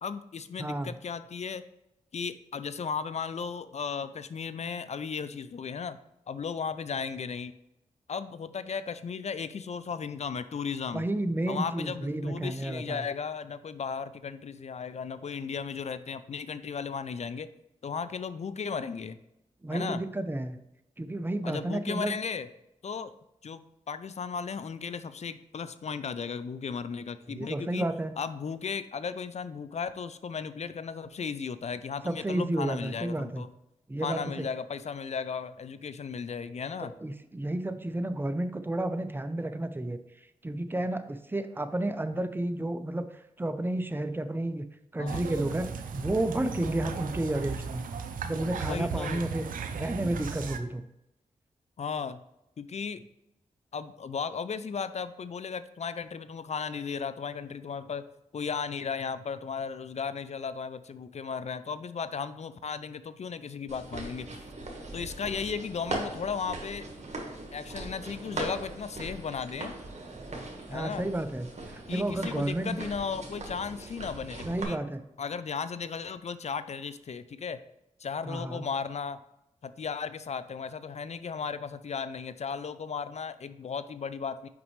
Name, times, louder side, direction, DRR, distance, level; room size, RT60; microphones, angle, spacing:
voice 1, 0.0-1.6 2.1-6.0 6.3-7.5 8.1-11.0 11.5-17.5 17.8-19.2 19.7-20.0 21.4-22.5 22.8-23.1 23.4-27.9 28.2-33.5 34.0-36.9 45.0-45.2 48.7-49.2 51.8-52.2 52.6-53.0 53.7-58.0 58.3-64.5 64.9-66.9 67.5-69.7 70.7-71.1 71.9-74.8 75.2-77.6 78.0-79.2 79.6-84.5, left 6 dB, 55° left, 13 dB, 0.4 m, -35 dB
voice 2, 0.6-0.9 10.9-13.0 19.6-20.6 21.0-22.1 27.3-28.1 32.0-33.4 33.9-34.4 37.0-40.0 40.4-43.0 43.4-44.6 44.9-47.9 48.2-49.5 49.7-50.9 70.7-72.8 74.5-75.0 78.2-78.7, right 1 dB, 15° right, 10 dB, 0.6 m, -31 dB
sound 1, 45.1-50.6, right 5 dB, 85° right, 0.5 m, -36 dB
sound 2, 63.7-74.6, right 2 dB, 55° right, 1.5 m, -40 dB
5.9 x 5.3 x 3.2 m, 0.86 s
cardioid pair, 40°, 14 cm